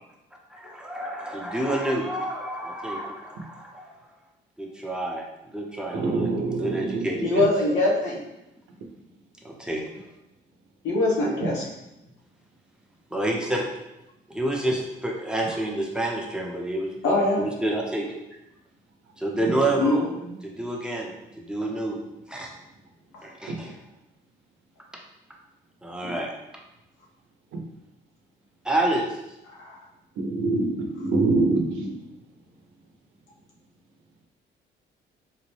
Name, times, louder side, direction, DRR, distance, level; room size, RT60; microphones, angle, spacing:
voice 1, 0.5-3.9 4.6-5.2 5.5-6.3 6.6-7.5 9.4-9.8 13.1-13.6 14.3-18.2 19.2-20.1 20.4-21.1 21.4-22.0 22.3-22.5 23.2-23.8 25.8-26.3 28.6-29.1, right 1 dB, 5° right, -1 dB, 0.6 m, -28 dB
voice 2, 5.9-7.4 23.5-23.6 26.0-26.1 30.2-31.9, right 3 dB, 80° right, 2 dB, 0.6 m, -25 dB
voice 3, 7.2-8.2 10.8-11.7 17.0-17.5 19.8-20.0 20.3-20.4 29.6-29.8, left 2 dB, 80° left, -3 dB, 1.0 m, -23 dB
3.9 x 2.2 x 3.1 m, 0.92 s
cardioid pair, 90°, 20 cm